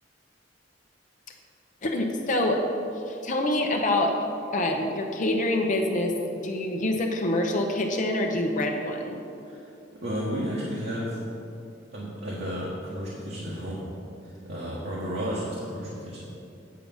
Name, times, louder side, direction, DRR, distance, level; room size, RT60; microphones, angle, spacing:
voice 1, 1.8-2.6 3.1-4.1 4.5-6.1 6.4-9.2, left 1 dB, 40° left, 2 dB, 0.7 m, -26 dB
voice 2, 10.0-11.2 11.9-13.9 14.4-16.3, equal, 60° right, -6 dB, 1.5 m, -32 dB
8.4 x 7.4 x 5.5 m, 2.7 s
head